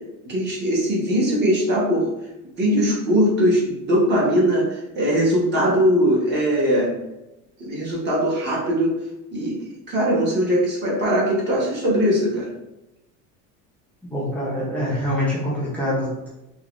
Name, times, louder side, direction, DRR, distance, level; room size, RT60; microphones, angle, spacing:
voice 1, 0.2-2.1 2.6-6.9 7.6-9.0 9.3-12.5, equal, 30° right, -4 dB, 1.0 m, -20 dB
voice 2, 14.1-16.3, left 1 dB, 5° left, -8 dB, 0.6 m, -25 dB
3.7 x 2.2 x 3.0 m, 0.94 s
cardioid pair, 160°, 36 cm